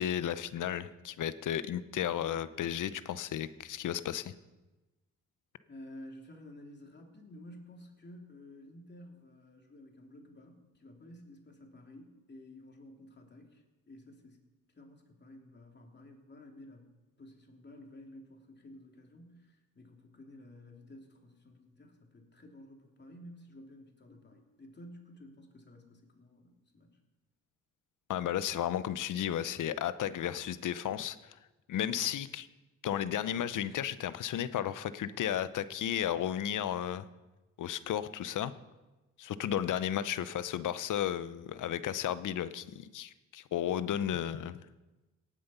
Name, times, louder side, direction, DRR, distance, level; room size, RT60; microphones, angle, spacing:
voice 1, 0.0-4.3 28.1-31.4 31.7-32.5 32.8-37.1 37.6-38.5 39.2-44.6, left 10 dB, 65° left, 14 dB, 0.8 m, -33 dB
voice 2, 5.7-14.4 14.7-16.9 17.2-27.0, left 1 dB, 30° left, 2 dB, 2.9 m, -52 dB
18.5 x 7.6 x 5.6 m, 1.1 s
supercardioid pair, 65°, 33 cm